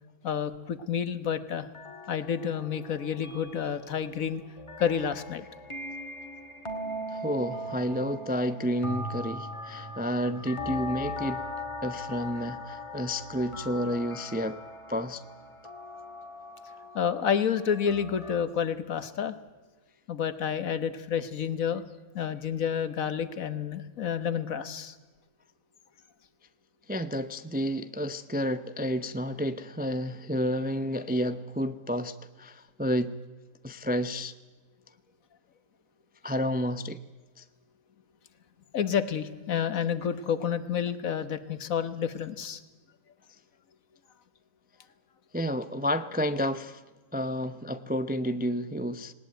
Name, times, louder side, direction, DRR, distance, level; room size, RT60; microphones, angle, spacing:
voice 1, 0.2-1.7 2.1-4.4 4.8-5.4 16.9-19.3 20.1-21.8 22.1-24.9 38.7-42.6, left 8 dB, 65° left, 1.6 m, -29 dB
sound 1, 1.7-18.5, left 1 dB, 20° left, 2.3 m, -40 dB
voice 2, 7.1-11.4 11.8-14.6 14.9-15.2 26.9-33.2 33.6-34.3 36.2-37.0 37.4-37.5 45.3-46.8 47.1-49.1, equal, 10° right, 0.4 m, -30 dB
19.5 x 19.0 x 9.1 m
omnidirectional pair, 1.6 m